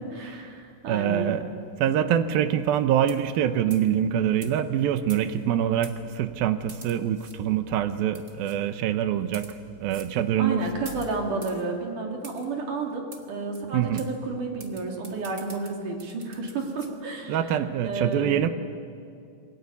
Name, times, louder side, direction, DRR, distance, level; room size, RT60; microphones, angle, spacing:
voice 1, 0.1-1.4 10.4-17.4 17.8-18.5, right 3 dB, 55° right, 1 dB, 4.2 m, -31 dB
voice 2, 0.9-1.5 1.8-9.5 9.8-10.6 13.7-14.0 17.3-18.5, right 10 dB, 75° right, 10 dB, 2.6 m, -25 dB
sound 1, 3.1-3.4 3.7-3.9 4.4-4.5 5.1-5.5 5.8-6.0 6.7-7.4 8.1-8.6 9.2-9.6 9.9-10.1 10.8-11.6 12.2-12.5 13.1-13.2 13.5-13.6 14.0-14.1 14.6-16.9, right 3 dB, 30° right, 1.9 m, -46 dB
28.0 x 22.0 x 8.4 m, 2.4 s
omnidirectional pair, 4.6 m